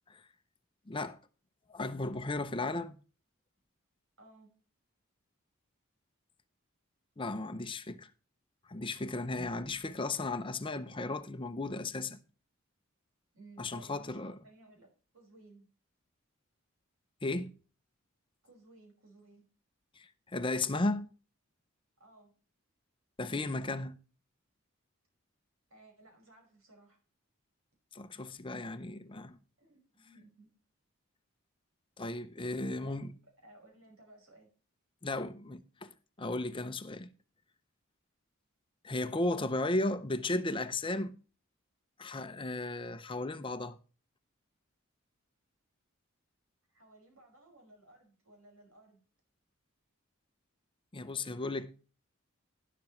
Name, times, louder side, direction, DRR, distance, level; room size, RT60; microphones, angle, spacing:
voice 1, 0.9-1.2 1.7-3.0 7.2-8.1 8.7-12.2 13.6-14.4 17.2-17.5 20.0-21.1 23.2-24.0 27.9-29.4 32.0-33.1 35.0-37.1 38.8-41.1 42.0-43.8 50.9-51.7, left 2 dB, 25° left, 0.6 m, -35 dB
voice 2, 4.2-4.5 13.3-14.9 15.1-15.7 18.4-19.5 22.0-22.3 25.7-27.0 29.6-30.5 32.7-34.5 46.7-49.0, right 2 dB, 80° right, 5.6 m, -58 dB
12.0 x 11.0 x 3.1 m
head